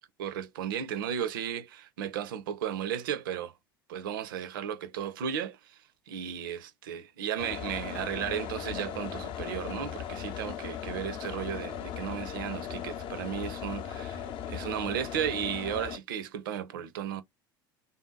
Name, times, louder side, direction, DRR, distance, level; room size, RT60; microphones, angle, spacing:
voice 1, 0.2-3.5 3.9-5.8 6.1-17.2, right 9 dB, 70° right, 0.5 m, -34 dB
sound 1, 7.4-16.0, left 9 dB, 45° left, 0.6 m, -38 dB
3.5 x 2.6 x 3.8 m
figure-of-eight pair, 70°, 12 cm